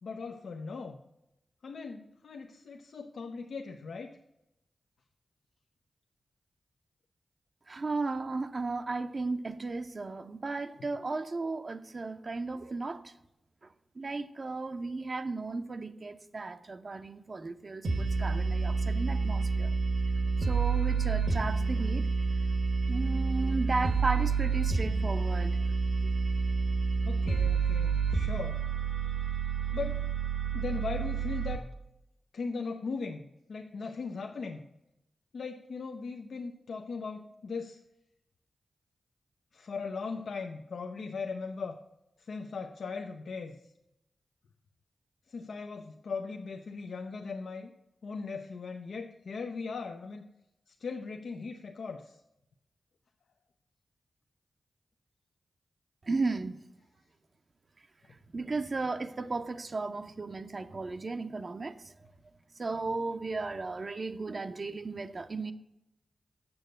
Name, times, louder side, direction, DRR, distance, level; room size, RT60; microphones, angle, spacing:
voice 1, 0.0-1.0 1.6-4.2 10.8-10.9 27.0-28.6 29.7-30.0 30.5-31.6 32.3-34.7 35.3-37.8 39.5-41.8 42.2-43.6 45.3-47.7 48.0-50.3 50.7-52.2, left 4 dB, 80° left, 0.5 m, -39 dB
voice 2, 7.7-13.1 14.0-19.7 20.4-22.1 22.9-25.6 26.0-26.1 56.0-56.7 58.3-61.9 62.6-65.5, right 3 dB, 50° right, 0.6 m, -35 dB
sound 1, 17.8-31.6, right 4 dB, 70° right, 1.1 m, -29 dB
7.0 x 6.6 x 7.8 m
cardioid pair, 55°, 0 cm